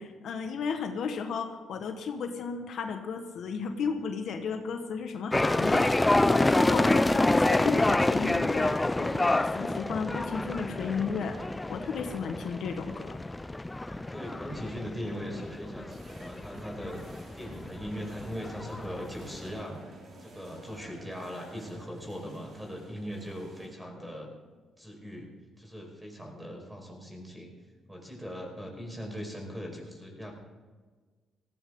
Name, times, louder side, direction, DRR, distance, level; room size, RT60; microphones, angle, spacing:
voice 1, 0.0-11.4 11.7-13.2, left 6 dB, 70° left, 5 dB, 1.5 m, -34 dB
sound 1, 5.3-19.6, left 2 dB, 15° left, 0.4 m, -28 dB
voice 2, 13.8-17.0 17.3-19.8 20.2-24.3 24.8-25.3 25.6-27.5 27.9-30.3, equal, 5° right, 1 dB, 5.0 m, -40 dB
sound 2, 15.9-23.7, right 2 dB, 50° right, 5.1 m, -52 dB
17.5 x 16.0 x 3.9 m, 1.4 s
cardioid pair, 90°, 0 cm